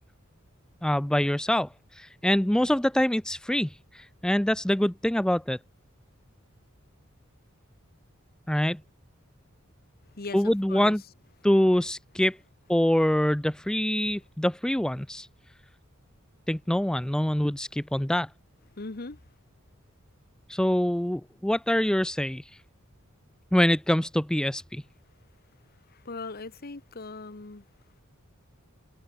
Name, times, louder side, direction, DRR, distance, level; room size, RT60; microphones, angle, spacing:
voice 1, 0.8-1.7 2.0-5.6 8.5-8.8 10.3-11.0 11.4-12.4 12.7-15.3 16.5-18.3 20.5-22.4 23.5-24.8, left 1 dB, 5° left, 0.4 m, -25 dB
voice 2, 10.0-11.0 18.7-19.3 25.7-27.7, left 3 dB, 45° left, 1.2 m, -40 dB
head